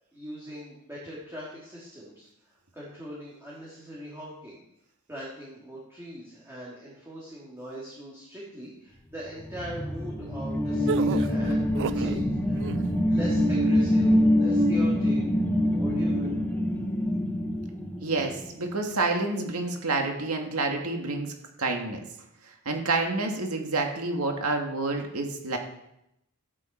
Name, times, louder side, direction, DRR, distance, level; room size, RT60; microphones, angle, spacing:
voice 1, 0.1-2.3 2.7-4.6 5.1-12.7 13.1-15.2 15.6-16.4, equal, 10° right, -7 dB, 2.7 m, -41 dB
sound 1, 9.3-18.5, equal, 10° left, 1.1 m, -25 dB
sound 2, 10.9-12.2 12.5-13.0, right 7 dB, 55° right, 0.3 m, -32 dB
voice 2, 18.0-21.3 21.6-22.0 22.7-25.6, right 3 dB, 80° right, 3 dB, 2.0 m, -28 dB
13.0 x 9.7 x 4.5 m, 0.82 s
head